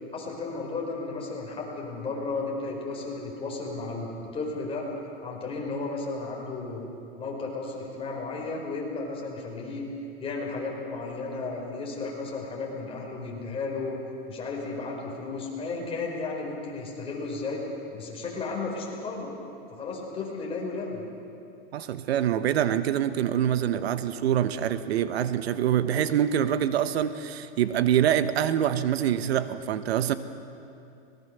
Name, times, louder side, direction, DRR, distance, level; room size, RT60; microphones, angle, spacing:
voice 1, 0.1-4.8 5.2-6.9 7.2-9.8 10.2-14.0 14.3-17.6 17.9-19.3 19.7-21.0, left 3 dB, 15° left, -2 dB, 5.0 m, -34 dB
voice 2, 21.7-30.1, right 10 dB, 75° right, 12 dB, 1.1 m, -25 dB
25.0 x 19.5 x 6.8 m, 2.7 s
supercardioid pair, 145°, 32 cm